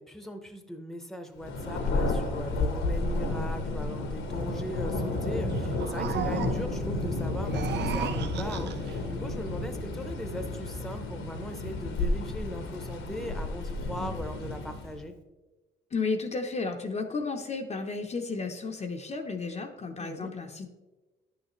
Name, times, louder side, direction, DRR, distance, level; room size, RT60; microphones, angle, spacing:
voice 1, 0.0-15.1 20.0-20.3, equal, ahead, 7 dB, 0.8 m, -39 dB
Thunder, 1.4-15.0, left 2 dB, 80° left, 1.2 m, -31 dB
sound 1, 5.5-6.8 7.4-9.0, right 8 dB, 60° right, 0.5 m, -35 dB
voice 2, 15.9-20.7, left 4 dB, 35° left, 4 dB, 0.7 m, -33 dB
10.5 x 6.5 x 3.1 m, 1.2 s
cardioid pair, 90°, 20 cm